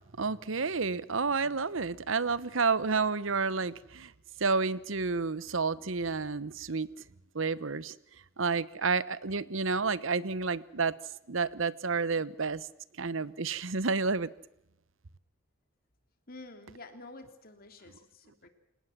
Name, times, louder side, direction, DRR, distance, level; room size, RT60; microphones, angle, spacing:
voice 1, 0.2-4.1 4.4-6.9 7.3-7.9 8.4-10.9 11.3-12.6 13.0-14.3, right 4 dB, 75° right, 1.0 m, -30 dB
voice 2, 16.3-18.5, left 2 dB, 50° left, 3.4 m, -49 dB
29.0 x 18.0 x 7.4 m
head